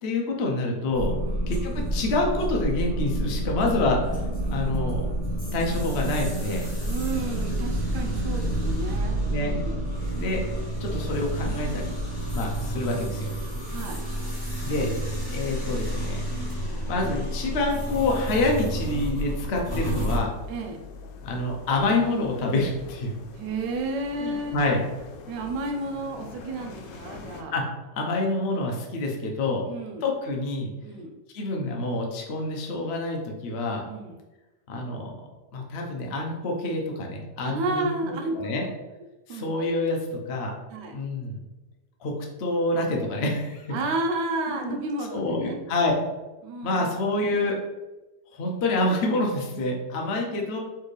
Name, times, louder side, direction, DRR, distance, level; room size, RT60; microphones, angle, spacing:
voice 1, 0.0-1.2 1.5-5.1 5.5-6.7 9.3-9.5 10.2-10.4 10.8-12.0 12.3-13.3 14.6-14.9 15.3-16.2 16.9-20.3 21.2-23.1 24.2-24.8 27.5-27.6 27.9-29.6 30.0-30.7 31.3-33.8 34.7-35.1 35.5-38.6 39.3-40.5 40.9-41.4 42.0-42.1 42.4-43.7 44.5-44.8 45.1-45.9 46.6-47.6 48.3-50.6, left 2 dB, 55° left, 0 dB, 0.7 m, -27 dB
sound 1, 0.9-20.2, right 1 dB, 15° left, 1.1 m, -29 dB
voice 2, 6.8-9.8 13.7-14.0 14.8-15.0 20.5-20.8 23.3-24.6 25.3-27.5 29.7-30.0 30.8-31.1 33.9-34.1 37.4-38.5 39.3-39.5 40.7-41.0 43.7-45.6 46.4-47.0, right 2 dB, 80° right, 3 dB, 1.3 m, -32 dB
sound 2, 15.0-27.4, left 4 dB, 85° left, 1.2 m, -44 dB
4.5 x 3.5 x 3.2 m, 1.1 s
omnidirectional pair, 1.9 m